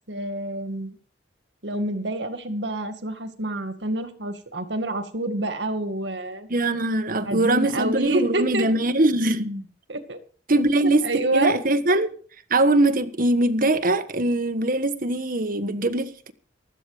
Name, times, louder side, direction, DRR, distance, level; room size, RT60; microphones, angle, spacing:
voice 1, 0.1-1.0 1.6-6.5 7.2-8.7 9.9-10.2 10.8-11.6, right 1 dB, 75° right, 2.3 m, -27 dB
voice 2, 6.5-9.6 10.5-12.1 12.5-16.3, right 2 dB, 50° right, 1.5 m, -22 dB
15.5 x 13.0 x 5.1 m
head